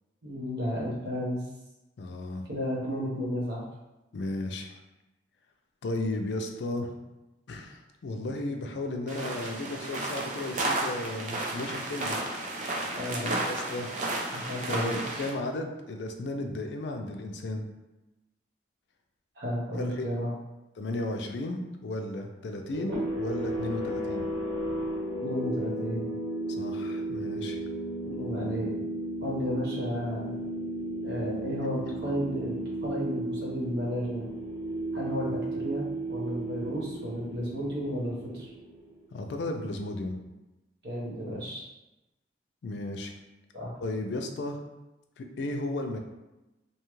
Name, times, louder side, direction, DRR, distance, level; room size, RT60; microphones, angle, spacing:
voice 1, 0.2-1.4 2.5-3.6 12.9-13.4 14.3-15.0 19.4-20.3 25.2-26.1 28.0-28.7 29.2-30.3 31.0-34.2 34.9-38.5 40.8-41.6 43.5-43.8, equal, 65° right, -5 dB, 1.0 m, -33 dB
voice 2, 2.0-2.5 4.1-4.8 5.8-6.9 7.5-12.2 13.2-13.9 14.7-17.6 19.7-20.1 20.8-24.3 26.6-27.6 39.1-40.2 42.6-43.1 43.8-44.6 45.2-46.0, left 2 dB, 70° left, 4 dB, 0.4 m, -34 dB
sound 1, 9.1-15.3, right 2 dB, 40° right, 0.4 m, -33 dB
sound 2, 22.7-39.0, right 1 dB, 85° right, 1.1 m, -34 dB
2.8 x 2.3 x 3.0 m, 1.0 s
head